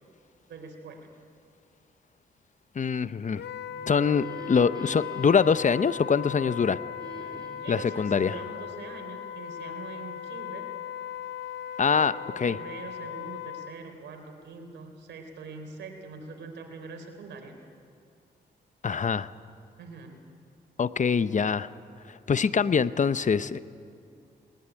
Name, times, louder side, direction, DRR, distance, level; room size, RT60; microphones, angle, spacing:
voice 1, 0.5-1.1 7.6-10.7 12.1-17.6 19.8-20.2, right 4 dB, 85° right, 4 dB, 3.5 m, -43 dB
voice 2, 2.7-3.4 3.9-6.8 7.7-8.4 11.8-12.6 18.8-19.3 20.8-21.7 22.0-23.6, left 6 dB, 45° left, 15 dB, 0.7 m, -24 dB
Wind instrument woodwind instrument, 3.4-13.8, left 10 dB, 75° left, 0.7 m, -38 dB
sound 1, 3.6-6.5 7.0-8.0, right 3 dB, 25° right, 3.9 m, -46 dB
20.5 x 19.5 x 10.0 m, 2.4 s
cardioid pair, 60°, 18 cm